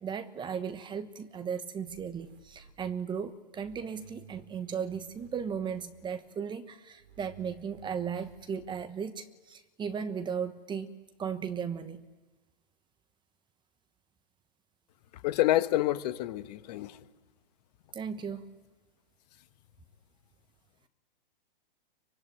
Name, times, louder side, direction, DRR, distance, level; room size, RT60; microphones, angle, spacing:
voice 1, 0.0-10.9 11.2-12.1 17.9-18.5, right 7 dB, 15° right, 10 dB, 1.1 m, -36 dB
sound 1, 1.9-3.3 3.6-6.4 7.0-8.7, right 7 dB, 60° right, 5.1 m, -57 dB
voice 2, 15.2-17.0, left 15 dB, 45° left, 11 dB, 1.3 m, -28 dB
27.0 x 24.0 x 9.2 m, 1.2 s
hypercardioid pair, 125°, 29 cm